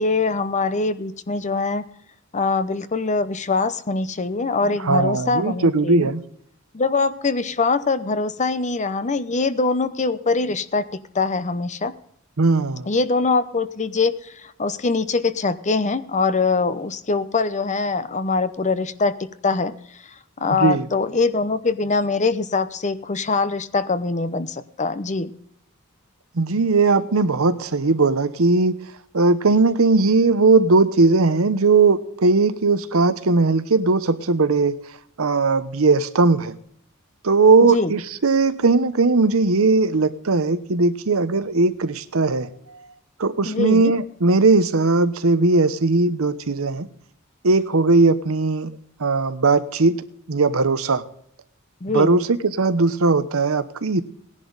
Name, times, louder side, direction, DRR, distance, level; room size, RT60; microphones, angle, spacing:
voice 1, 0.0-1.8 2.3-6.1 6.7-11.9 12.9-19.7 20.4-25.3 37.6-37.9 43.5-43.9 51.8-52.2, left 3 dB, 35° left, 13 dB, 0.8 m, -23 dB
voice 2, 4.9-6.2 12.4-12.8 20.6-20.9 26.4-28.8 29.1-34.8 35.2-36.5 37.2-42.5 43.2-46.9 47.4-48.7 49.0-50.0 50.3-51.0 51.9-54.0, right 3 dB, 80° right, 12 dB, 0.9 m, -18 dB
18.0 x 10.5 x 4.0 m, 0.69 s
head